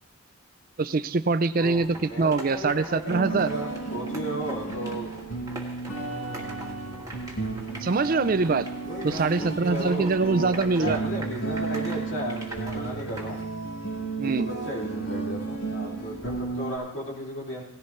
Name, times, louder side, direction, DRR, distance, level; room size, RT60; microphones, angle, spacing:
voice 1, 0.8-3.5 7.8-8.7 9.0-11.0 14.2-14.5, right 4 dB, 45° right, 13 dB, 0.5 m, -24 dB
voice 2, 1.5-5.2 6.0-7.1 8.8-13.4 14.2-17.6, equal, 65° left, -4 dB, 2.7 m, -35 dB
sound 1, 1.6-13.4, right 2 dB, 15° right, 1.9 m, -44 dB
sound 2, 3.1-16.8, right 3 dB, 90° left, 5.0 m, -33 dB
18.0 x 15.0 x 3.2 m, 0.95 s
head